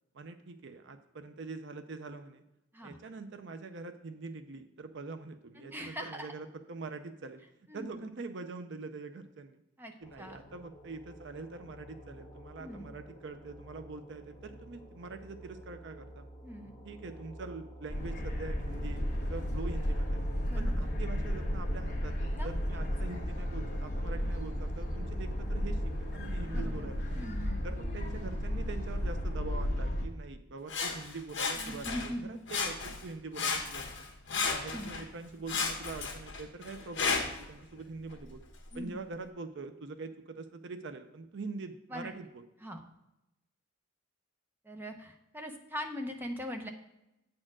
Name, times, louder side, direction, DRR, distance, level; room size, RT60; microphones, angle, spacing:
voice 1, 0.1-2.4 2.8-9.6 10.0-16.2 16.8-20.2 20.5-27.0 27.6-33.9 34.5-38.4 38.7-42.4, right 3 dB, 55° right, 8 dB, 0.5 m, -44 dB
voice 2, 5.6-6.3 7.7-8.0 9.8-10.4 12.6-12.9 16.4-16.7 20.5-20.9 22.4-22.5 22.8-22.9 26.5-27.6 31.6-32.3 34.7-34.9 38.7-39.0 41.9-42.1 42.6-42.8 44.6-46.7, equal, 10° right, 3 dB, 0.7 m, -41 dB
sound 1, 10.0-26.8, equal, 15° left, 1.2 m, -47 dB
sound 2, 17.9-30.1, equal, 40° left, 1.4 m, -33 dB
Sawing, 30.7-32.2 32.5-33.1 33.3-35.1 35.5-37.5 38.1-38.2, left 5 dB, 60° left, 1.4 m, -34 dB
8.8 x 4.4 x 6.0 m, 0.90 s
head